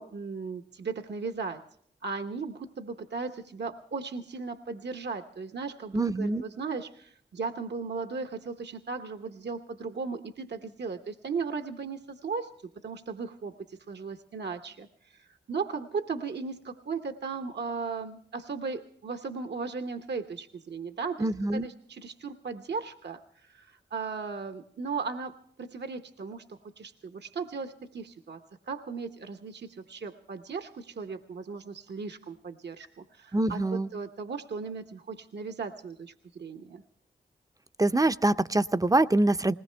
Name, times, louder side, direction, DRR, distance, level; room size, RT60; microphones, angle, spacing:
voice 1, 0.0-1.6 2.0-12.5 12.8-28.4 28.7-36.8, right 4 dB, 70° right, 6 dB, 0.9 m, -37 dB
voice 2, 5.9-6.4 21.2-21.7 33.3-33.9 37.8-39.5, right 2 dB, 20° right, 13 dB, 0.5 m, -24 dB
20.0 x 18.5 x 3.3 m, 0.63 s
cardioid pair, 40°, 18 cm